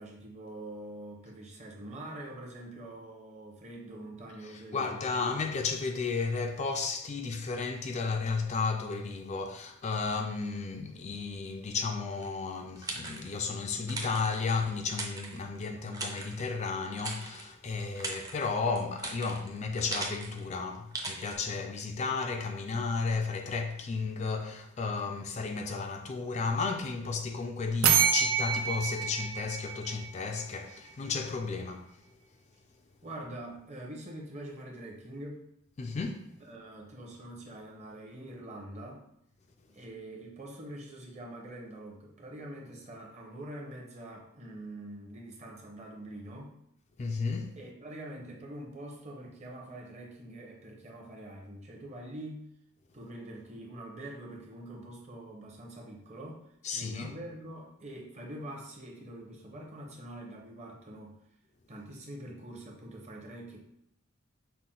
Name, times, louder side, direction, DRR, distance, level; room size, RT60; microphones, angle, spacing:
voice 1, 0.0-5.0 33.0-35.4 36.4-39.0 39.7-46.5 47.5-52.5 52.9-56.5 56.7-61.2 61.7-63.6, right 1 dB, 35° right, 0.9 m, -44 dB
voice 2, 4.4-32.0 35.8-36.3 47.0-47.6 56.6-57.1, left 4 dB, 35° left, 0.3 m, -33 dB
sound 1, 12.2-13.5 13.9-15.6 15.9-16.5 17.0-17.5 17.8-20.5 20.9-21.4, right 2 dB, 20° right, 0.5 m, -39 dB
sound 2, 27.8-30.6, right 8 dB, 80° right, 0.5 m, -28 dB
5.7 x 2.2 x 3.7 m
head